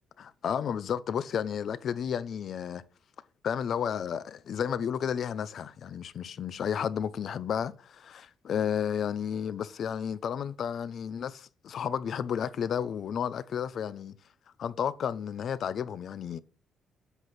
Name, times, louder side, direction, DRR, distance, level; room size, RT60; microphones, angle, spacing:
voice 1, 0.2-2.8 3.4-14.1 14.6-16.4, left 8 dB, 60° left, 0.7 m, -32 dB
8.1 x 5.9 x 6.1 m
cardioid pair, 90°, 0 cm